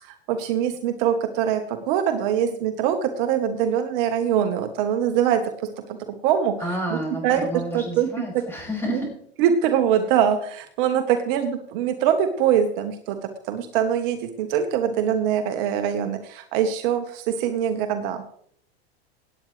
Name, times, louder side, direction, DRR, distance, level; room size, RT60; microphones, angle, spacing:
voice 1, 0.0-5.7 6.1-8.1 8.9-9.0 9.4-13.2 13.5-18.2, right 9 dB, 55° right, 7 dB, 1.3 m, -23 dB
voice 2, 6.6-9.1, equal, 5° left, -3 dB, 6.2 m, -30 dB
17.5 x 9.0 x 3.3 m, 0.63 s
supercardioid pair, 135°, 32 cm